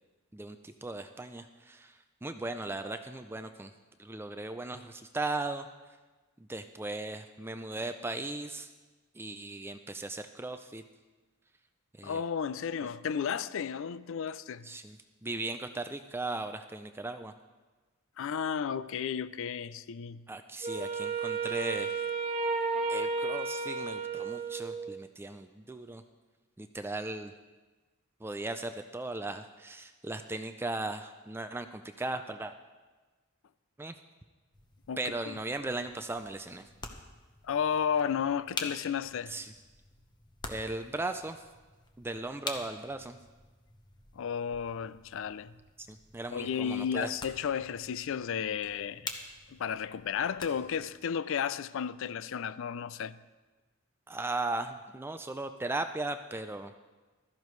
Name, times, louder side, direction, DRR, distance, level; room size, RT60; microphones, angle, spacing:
voice 1, 0.3-3.7 4.0-6.0 6.5-8.7 9.1-10.8 12.0-12.2 14.6-17.3 20.3-22.0 22.9-26.0 26.6-27.3 28.2-32.5 33.8-33.9 35.0-36.7 39.3-39.5 40.5-41.4 42.0-43.2 45.8-47.1 54.1-56.7, right 2 dB, 10° right, 0.4 m, -37 dB
voice 2, 12.0-14.7 18.2-20.3 34.9-35.0 35.3-35.4 37.4-39.3 44.2-45.5 46.3-49.1 49.5-53.2, left 7 dB, 65° left, 0.4 m, -33 dB
Wind instrument woodwind instrument, 20.6-25.0, right 4 dB, 30° right, 1.2 m, -33 dB
sound 1, 34.5-50.9, left 3 dB, 20° left, 1.0 m, -47 dB
15.5 x 13.5 x 3.2 m
head